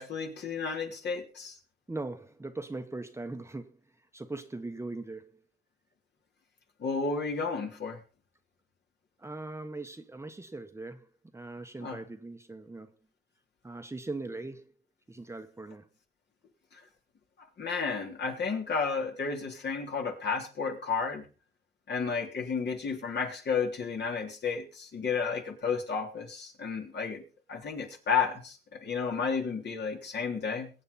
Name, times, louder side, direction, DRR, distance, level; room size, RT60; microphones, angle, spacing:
voice 1, 0.0-1.6 6.8-8.0 11.8-12.0 16.7-16.8 17.6-21.3 21.9-27.2 27.5-30.7, left 5 dB, 55° left, 3.5 m, -32 dB
voice 2, 1.9-3.8 4.1-5.4 9.2-11.1 11.3-12.9 13.6-14.7 15.1-15.9, right 2 dB, 15° right, 1.1 m, -40 dB
22.5 x 8.7 x 4.2 m
cardioid pair, 100°, 21 cm